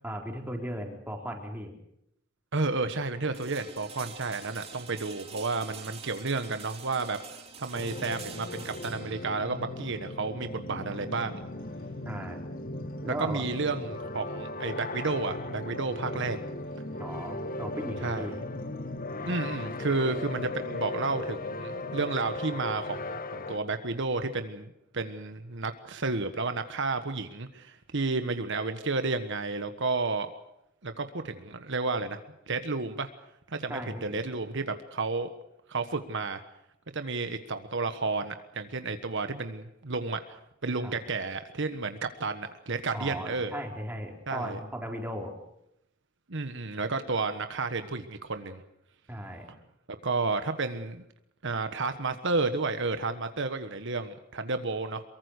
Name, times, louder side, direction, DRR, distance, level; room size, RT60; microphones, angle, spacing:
voice 1, 0.0-1.7 12.0-12.4 13.0-13.4 17.0-18.4 33.7-34.2 40.8-40.9 41.2-41.3 42.9-45.3 49.1-49.5, equal, 10° right, 1 dB, 4.2 m, -37 dB
voice 2, 2.5-7.2 7.6-11.4 13.2-16.4 18.0-18.3 19.3-30.3 30.8-32.2 32.5-33.1 33.5-35.3 35.7-36.4 36.9-40.4 40.6-43.5 44.3-44.6 46.3-48.6 49.9-51.0 51.4-55.0, right 3 dB, 65° right, 9 dB, 1.4 m, -31 dB
sound 1, 3.3-13.2, right 5 dB, 30° right, 3.2 m, -47 dB
sound 2, 7.7-23.6, left 2 dB, 45° left, 1.4 m, -37 dB
23.5 x 23.0 x 6.6 m, 0.78 s
head